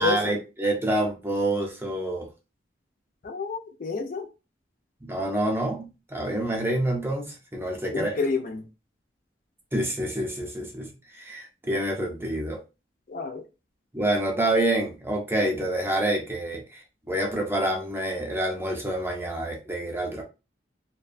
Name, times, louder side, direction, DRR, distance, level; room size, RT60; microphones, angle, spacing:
voice 1, 0.0-2.3 5.0-8.2 9.7-12.6 13.9-20.2, right 1 dB, 15° right, 1 dB, 0.6 m, -27 dB
voice 2, 3.2-4.3 7.9-8.6 13.1-13.4, left 4 dB, 50° left, 4 dB, 0.5 m, -29 dB
2.4 x 2.2 x 2.5 m, 0.28 s
head